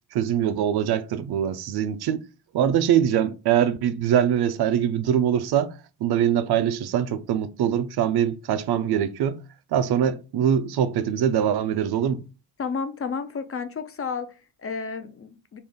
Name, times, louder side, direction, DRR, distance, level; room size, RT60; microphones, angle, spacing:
voice 1, 0.1-2.2 2.5-9.4 9.7-12.2, right 9 dB, 60° right, 0.5 m, -23 dB
voice 2, 12.6-15.6, left 5 dB, 30° left, 0.4 m, -32 dB
3.3 x 2.3 x 3.6 m
supercardioid pair, 70°, 45 cm